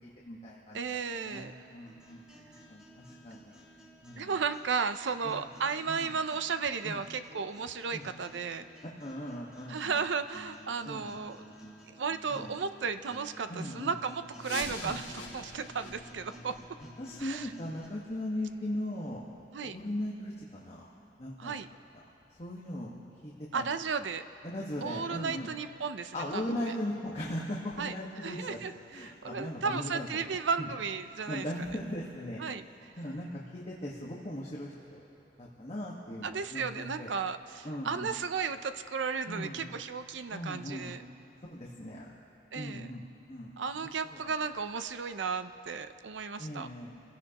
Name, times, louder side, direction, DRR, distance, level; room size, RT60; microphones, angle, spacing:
voice 1, 0.0-3.5 4.0-4.3 5.2-5.5 5.9-6.1 6.8-7.0 7.9-8.1 9.0-10.0 10.8-11.2 12.3-12.5 13.5-14.0 14.8-15.0 17.0-19.2 19.6-20.9 21.2-21.6 21.9-22.0 22.3-22.9 23.2-23.6 24.4-25.5 26.1-28.6 28.9-30.1 30.6-30.7 31.3-35.0 35.4-37.1 37.6-38.1 39.3-39.7 40.3-40.9 41.4-42.1 42.5-44.2 46.4-47.0, left 1 dB, 35° left, -5 dB, 1.5 m, -39 dB
voice 2, 0.7-1.5 4.2-8.6 9.7-11.4 11.9-16.6 17.2-17.5 19.5-19.8 21.4-21.7 23.5-24.2 24.8-26.4 27.8-27.9 28.2-31.5 32.4-32.6 36.2-41.0 42.5-42.9 43.6-46.7, right 5 dB, 85° right, 10 dB, 0.6 m, -34 dB
sound 1, 1.9-17.9, equal, 5° right, 2.8 m, -54 dB
sound 2, 14.4-20.0 20.3-20.4 21.0-21.1 21.7-21.8 22.3-22.4, left 3 dB, 50° left, 4.2 m, -46 dB
28.5 x 16.5 x 3.0 m, 3.0 s
head